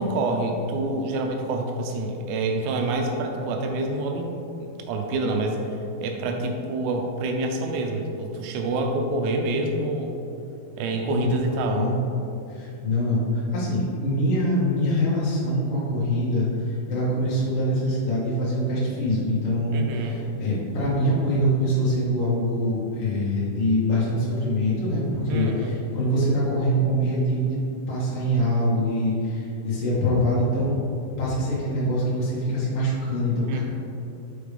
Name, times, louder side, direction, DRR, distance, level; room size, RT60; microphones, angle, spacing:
voice 1, 0.0-4.3 4.6-5.6 6.0-10.1 10.8-11.9 19.7-20.2 25.3-25.7 33.5-33.6, right 2 dB, 85° right, 2 dB, 2.8 m, -27 dB
voice 2, 11.1-11.9 12.5-27.6 27.9-30.8 31.2-33.6, equal, 65° left, -8 dB, 1.3 m, -24 dB
6.1 x 5.1 x 3.3 m, 2.7 s
omnidirectional pair, 4.9 m